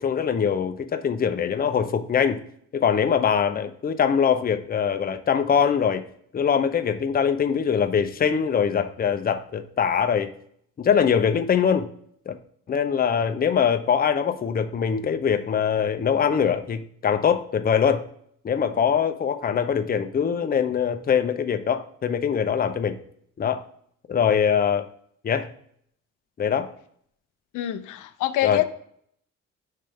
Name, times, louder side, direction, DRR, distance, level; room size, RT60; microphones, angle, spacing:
voice 1, 0.0-2.4 2.7-6.0 6.3-10.3 10.8-11.9 12.3-12.4 12.7-18.0 18.4-23.0 23.4-23.6 24.1-24.8 25.2-25.5 26.4-26.7 28.4-28.6, left 7 dB, 30° left, 8 dB, 0.6 m, -23 dB
voice 2, 27.5-28.6, left 13 dB, 85° left, 10 dB, 0.5 m, -25 dB
8.8 x 3.3 x 3.4 m, 0.65 s
cardioid pair, 90°, 30 cm